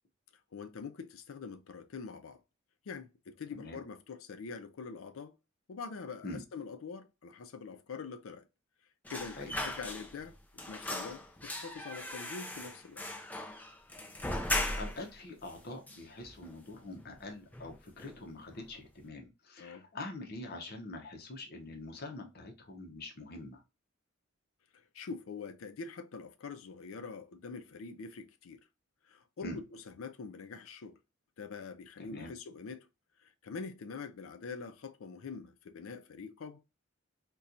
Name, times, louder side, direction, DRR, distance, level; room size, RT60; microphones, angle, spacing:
voice 1, 0.5-2.4 2.9-5.3 5.7-8.4 9.1-10.4 10.7-13.0 19.6-19.9 24.7-28.6 29.1-31.0 31.4-32.9 33.2-36.6, left 5 dB, 90° left, 0.5 m, -44 dB
sound 1, 9.1-10.3 10.6-15.1 15.5-15.6 15.9-16.7 17.0-17.2 17.5-18.2 18.5-18.7, left 1 dB, 10° left, 0.4 m, -38 dB
voice 2, 14.2-23.6 29.4-29.6 32.0-32.3, left 2 dB, 50° left, 0.7 m, -45 dB
4.1 x 2.3 x 2.5 m
head